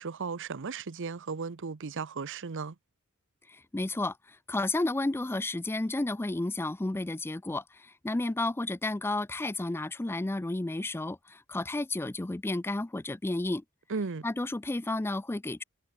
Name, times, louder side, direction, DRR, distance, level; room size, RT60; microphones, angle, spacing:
voice 1, 0.0-2.7 13.9-14.2, right 5 dB, 60° right, 0.7 m, -35 dB
voice 2, 3.5-13.6 14.2-15.6, left 2 dB, 10° left, 0.4 m, -32 dB
head